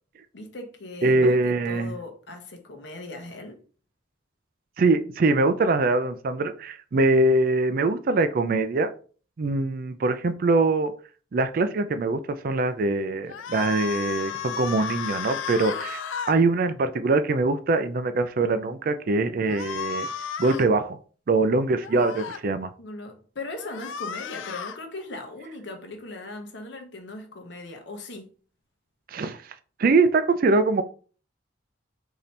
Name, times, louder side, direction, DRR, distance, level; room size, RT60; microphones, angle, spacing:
voice 1, 0.3-3.6 22.8-28.3, left 2 dB, 65° left, 0.9 m, -39 dB
voice 2, 1.0-1.9 4.8-8.9 9.4-11.0 11.3-20.1 20.4-21.0 21.3-22.7 29.1-29.4 29.8-30.8, right 3 dB, 50° right, 0.4 m, -23 dB
sound 1, 13.3-16.4 19.5-20.7 21.8-22.4 23.6-24.8, left 7 dB, 90° left, 0.4 m, -33 dB
4.0 x 2.8 x 3.2 m
head